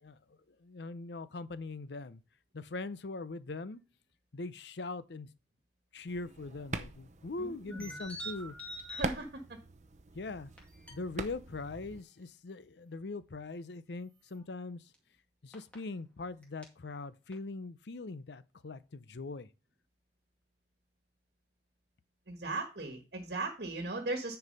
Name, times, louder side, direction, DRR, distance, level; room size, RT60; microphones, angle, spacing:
voice 1, 0.6-2.2 2.5-3.8 4.3-5.3 5.9-8.6 10.1-10.5 10.9-14.9 15.4-19.5, left 3 dB, 75° left, 0.6 m, -41 dB
sound 1, 6.1-12.0, right 3 dB, 40° right, 0.7 m, -43 dB
voice 2, 7.4-7.8 8.9-9.6 22.3-24.4, right 2 dB, 65° right, 1.4 m, -38 dB
sound 2, 7.7-9.0 10.6-11.1 14.3-14.4 14.9-15.0 15.5-15.7 16.4-16.6 17.3-17.4, equal, 5° left, 2.2 m, -44 dB
9.8 x 4.7 x 5.3 m
head